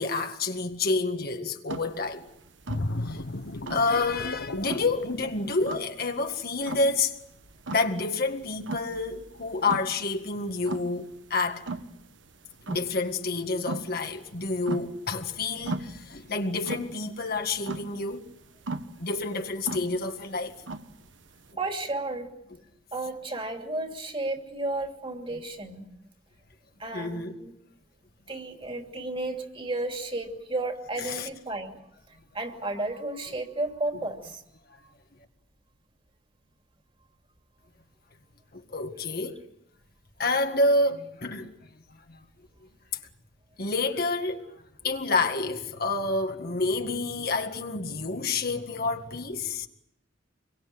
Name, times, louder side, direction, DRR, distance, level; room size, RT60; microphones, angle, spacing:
voice 1, 0.0-2.3 3.1-3.2 3.7-7.1 7.7-11.7 12.7-18.3 19.0-20.6 26.9-27.4 31.0-31.3 38.5-39.4 40.2-41.7 42.1-42.2 43.6-49.7, left 3 dB, 55° left, 1.9 m, -29 dB
sound 1, 1.7-21.5, right 2 dB, 75° right, 1.4 m, -38 dB
sound 2, 2.7-6.3 6.7-6.9, left 2 dB, 70° left, 1.2 m, -35 dB
voice 2, 21.6-22.3 22.9-25.9 26.8-27.5 28.3-31.8 32.3-34.4, right 2 dB, 30° right, 2.8 m, -33 dB
27.5 x 23.0 x 7.8 m
head